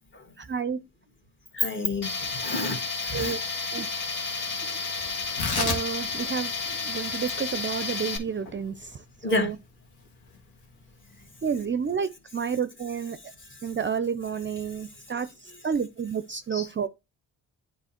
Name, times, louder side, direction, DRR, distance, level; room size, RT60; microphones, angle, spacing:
voice 1, 0.4-0.8 3.1-3.4 3.7-3.9 4.6-4.8 5.6-9.0 9.3-9.6 11.4-13.2 13.6-15.3 15.6-16.9, right 6 dB, 30° right, 0.5 m, -30 dB
voice 2, 1.5-3.3 9.2-9.5 16.5-16.7, left 2 dB, 30° left, 1.9 m, -29 dB
Tools, 2.0-8.2, left 4 dB, 60° left, 1.6 m, -32 dB
Tearing, 5.2-11.9, left 4 dB, 85° left, 1.7 m, -36 dB
9.0 x 3.0 x 4.3 m
supercardioid pair, 60°, 37 cm